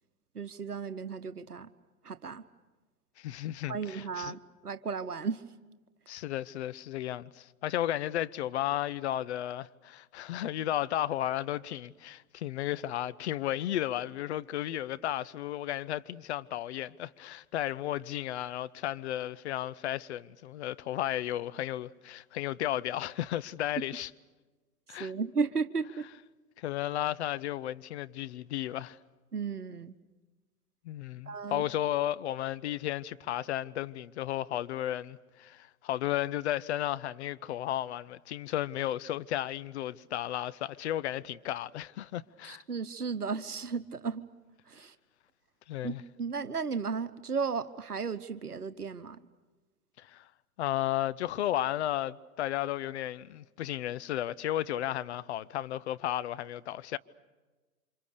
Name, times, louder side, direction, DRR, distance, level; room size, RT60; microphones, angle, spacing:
voice 1, 0.3-1.7 2.0-2.4 3.7-5.4 24.9-26.1 29.3-30.0 31.3-31.7 42.4-44.2 44.7-44.9 45.8-49.2, right 5 dB, 90° right, 0.9 m, -34 dB
voice 2, 3.2-4.4 6.1-24.1 24.9-25.1 26.6-29.0 30.8-42.6 45.7-46.0 50.0-50.3 50.6-57.0, left 13 dB, 50° left, 0.8 m, -34 dB
28.5 x 26.0 x 6.8 m
figure-of-eight pair, 105°, 44 cm